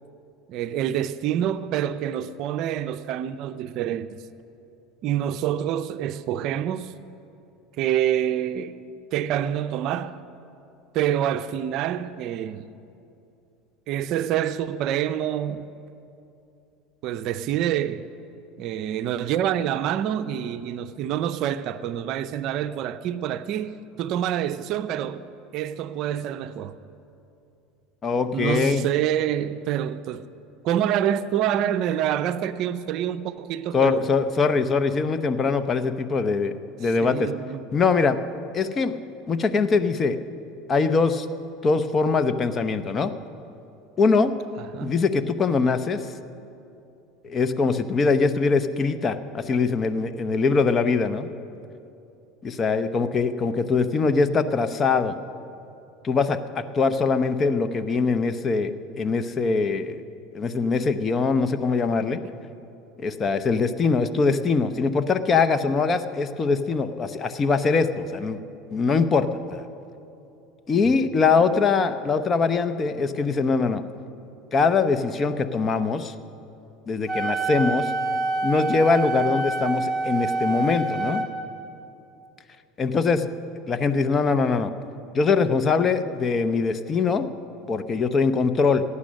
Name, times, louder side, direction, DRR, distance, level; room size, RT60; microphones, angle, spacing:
voice 1, 0.5-4.1 5.0-6.9 7.8-8.8 9.1-10.2 10.9-12.7 13.9-15.7 17.0-18.1 18.6-25.2 25.5-26.7 28.3-30.3 30.6-34.1 37.0-37.6 44.6-45.0, right 10 dB, 55° right, 0.5 m, -27 dB
voice 2, 28.0-28.8 33.7-36.5 36.8-37.3 37.7-38.2 38.5-38.9 39.3-40.2 40.7-41.3 41.6-43.1 44.0-44.3 44.8-46.0 47.2-51.3 52.4-55.2 56.0-60.0 60.3-62.2 63.0-68.4 68.7-69.6 70.7-73.8 74.5-76.1 76.9-77.9 78.4-81.2 82.8-83.2 83.7-84.7 85.1-87.3 87.7-88.8, left 4 dB, 30° left, 0.7 m, -22 dB
Wind instrument woodwind instrument, 77.1-81.3, right 2 dB, 10° right, 1.6 m, -26 dB
15.0 x 9.7 x 6.4 m
supercardioid pair, 105°, 0 cm